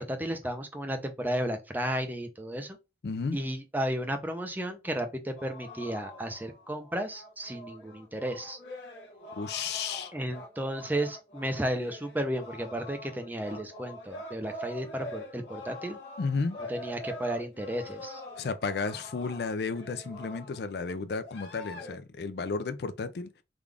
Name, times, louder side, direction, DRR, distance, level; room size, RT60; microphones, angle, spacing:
voice 1, 0.0-2.8 3.3-8.6 10.1-16.0 16.7-18.2, right 1 dB, 10° right, 0.5 m, -33 dB
voice 2, 3.0-3.4 9.4-10.1 16.2-16.6 18.4-23.3, left 4 dB, 60° left, 0.4 m, -33 dB
sound 1, 5.4-20.6 21.2-22.0, left 1 dB, 85° left, 1.1 m, -44 dB
3.6 x 2.4 x 3.3 m
head